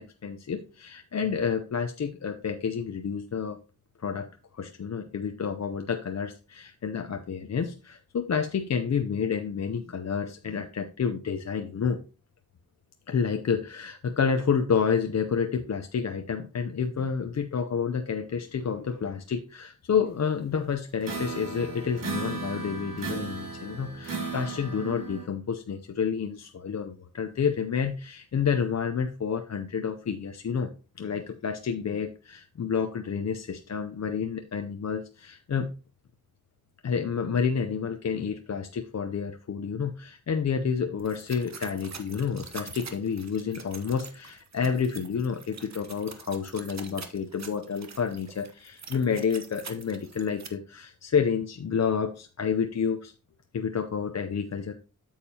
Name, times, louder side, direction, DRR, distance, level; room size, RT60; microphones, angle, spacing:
voice 1, 0.0-3.6 4.0-12.0 13.1-30.7 31.0-35.7 36.8-53.1 53.5-54.7, left 6 dB, 50° left, 6 dB, 0.6 m, -29 dB
sound 1, 21.0-25.2, right 4 dB, 70° right, 2.1 m, -35 dB
sound 2, 41.0-50.5, right 5 dB, 50° right, 1.0 m, -45 dB
8.5 x 7.2 x 2.8 m, 0.35 s
wide cardioid pair, 145°, 34 cm